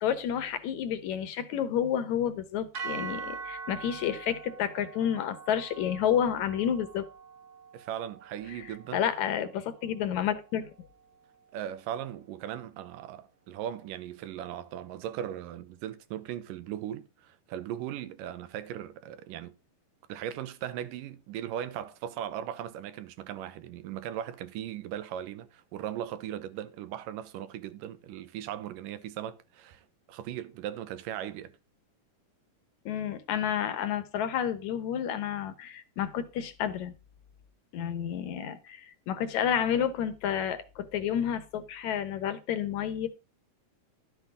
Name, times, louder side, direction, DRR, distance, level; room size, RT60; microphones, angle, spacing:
voice 1, 0.0-7.0 8.5-8.6 8.9-10.7 32.9-36.9 37.7-43.1, left 9 dB, 70° left, 2.3 m, -30 dB
sound 1, 2.7-11.0, right 5 dB, 65° right, 1.0 m, -44 dB
voice 2, 7.7-9.0 11.5-19.6 20.1-31.6, right 11 dB, 85° right, 2.6 m, -38 dB
12.0 x 7.9 x 3.7 m
omnidirectional pair, 3.8 m